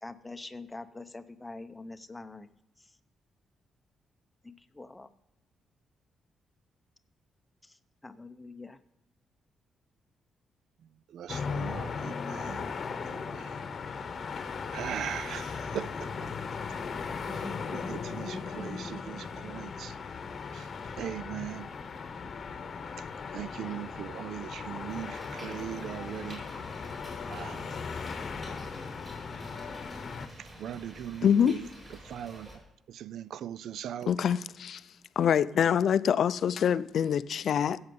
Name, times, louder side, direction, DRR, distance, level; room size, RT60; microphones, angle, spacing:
voice 1, 0.0-2.5 2.8-2.9 4.4-5.1 7.6-8.8, left 3 dB, 10° left, 0.7 m, -45 dB
voice 2, 11.1-12.7 13.1-13.5 14.7-15.9 17.7-19.9 20.5-20.6 21.0-21.7 23.3-26.4 27.3-27.7 30.6-31.6 32.1-32.5 32.9-34.1, right 10 dB, 75° right, 0.3 m, -39 dB
sound 1, 11.3-30.3, left 5 dB, 40° left, 1.0 m, -37 dB
sound 2, 24.9-32.6, equal, 20° right, 5.8 m, -49 dB
voice 3, 31.2-31.6 34.1-34.8 35.2-37.8, left 8 dB, 60° left, 0.4 m, -25 dB
15.5 x 7.9 x 5.4 m
cardioid pair, 140°, 0 cm